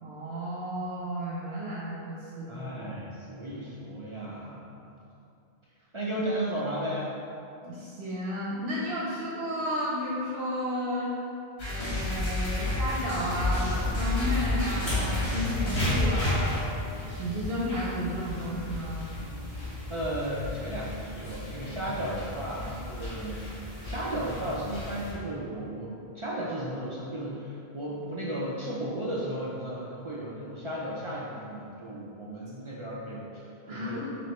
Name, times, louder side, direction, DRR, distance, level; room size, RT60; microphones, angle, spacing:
voice 1, 0.0-2.5 7.6-11.1 11.7-16.6 17.1-19.1 33.7-34.2, equal, 85° right, -5 dB, 0.9 m, -33 dB
voice 2, 2.5-4.9 5.9-7.2 19.9-34.1, right 1 dB, 55° right, -6 dB, 0.3 m, -35 dB
sound 1, 11.6-16.9, left 2 dB, 80° left, 1.4 m, -30 dB
sound 2, 11.9-25.1, left 1 dB, 50° left, 1.1 m, -35 dB
4.2 x 3.1 x 2.9 m, 2.6 s
omnidirectional pair, 1.0 m